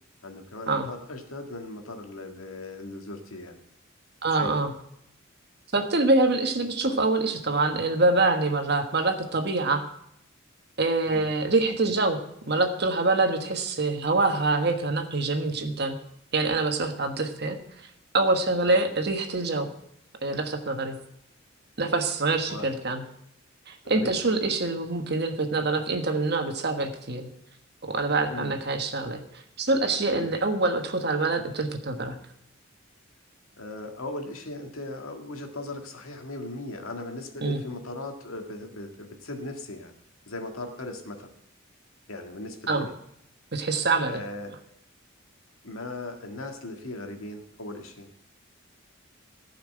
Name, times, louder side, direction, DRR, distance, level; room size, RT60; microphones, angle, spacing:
voice 1, 0.2-3.6 4.3-4.6 11.1-11.2 18.7-18.8 22.5-22.7 23.8-24.3 28.3-28.6 30.1-30.3 33.6-40.0 40.3-41.3 42.1-42.9 44.0-44.6 45.6-48.3, left 2 dB, 85° left, 4 dB, 1.8 m, -38 dB
voice 2, 4.2-4.7 5.7-9.8 10.8-12.2 12.5-16.0 16.3-17.6 18.1-19.7 20.2-21.0 21.8-23.0 23.7-27.3 27.8-29.2 29.6-32.1 37.4-37.6 42.7-42.8 43.5-44.2, right 3 dB, 50° right, 5 dB, 1.4 m, -25 dB
14.5 x 5.8 x 7.7 m, 0.74 s
head